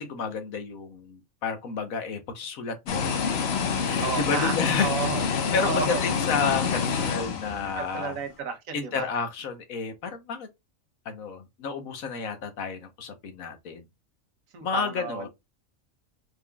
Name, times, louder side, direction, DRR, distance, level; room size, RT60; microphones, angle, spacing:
voice 1, 0.0-3.1 3.8-4.9 5.2-8.2 8.7-10.5 11.0-13.8 14.6-15.3, left 5 dB, 85° left, 1.4 m, -31 dB
sound 1, 2.9-8.0, left 6 dB, 55° left, 0.9 m, -27 dB
voice 2, 4.0-4.6 4.8-5.3 5.6-6.0 7.8-9.1 14.5-15.3, right 6 dB, 80° right, 1.3 m, -32 dB
4.7 x 3.5 x 2.3 m
omnidirectional pair, 1.4 m